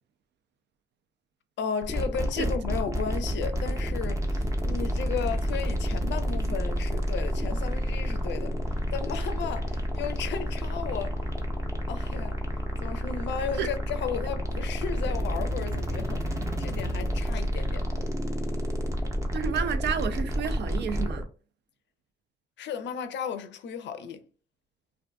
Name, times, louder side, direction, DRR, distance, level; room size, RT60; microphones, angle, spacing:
voice 1, 1.6-8.5 8.9-11.2 11.9-12.4 12.8-17.9 22.6-24.2, left 6 dB, 65° left, 0.5 m, -34 dB
sound 1, 1.8-21.2, equal, 15° right, 0.6 m, -29 dB
voice 2, 19.3-21.3, right 7 dB, 60° right, 0.4 m, -30 dB
2.5 x 2.4 x 2.2 m
cardioid pair, 90°, 20 cm